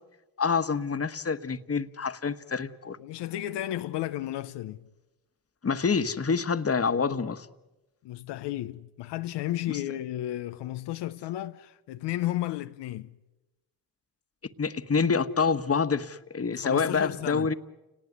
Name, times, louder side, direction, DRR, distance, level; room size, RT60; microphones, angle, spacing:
voice 1, 0.4-3.0 5.6-7.5 9.7-9.8 14.6-17.5, left 5 dB, 35° left, 1.5 m, -27 dB
voice 2, 3.0-4.9 8.0-13.2 16.6-17.5, left 14 dB, 85° left, 0.8 m, -33 dB
29.5 x 19.0 x 9.6 m
supercardioid pair, 50°, 40 cm